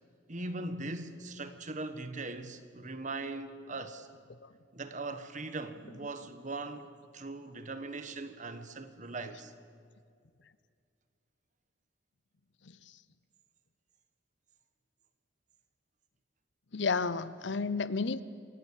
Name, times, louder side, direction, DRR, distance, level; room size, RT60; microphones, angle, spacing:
voice 1, 0.3-4.1 4.7-9.5, right 2 dB, 40° right, 1.4 m, -40 dB
voice 2, 12.6-13.0 16.7-18.2, left 4 dB, 70° left, 0.8 m, -32 dB
27.0 x 16.5 x 7.5 m
head